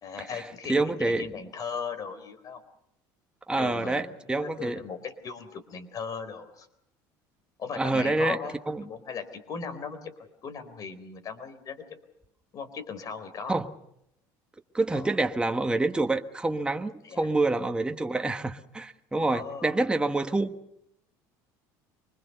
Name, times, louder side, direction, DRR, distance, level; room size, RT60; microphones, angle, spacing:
voice 1, 0.0-2.6 3.5-6.7 7.6-8.5 8.8-10.1 10.4-11.8 12.5-13.6 14.9-15.1 17.0-17.3 19.1-19.8, left 6 dB, 45° left, 4.1 m, -38 dB
voice 2, 0.7-1.3 3.5-4.8 7.7-8.4 8.7-8.8 13.5-13.7 14.7-20.5, right 2 dB, 10° right, 1.3 m, -27 dB
24.5 x 20.5 x 6.8 m
supercardioid pair, 100°, 9 cm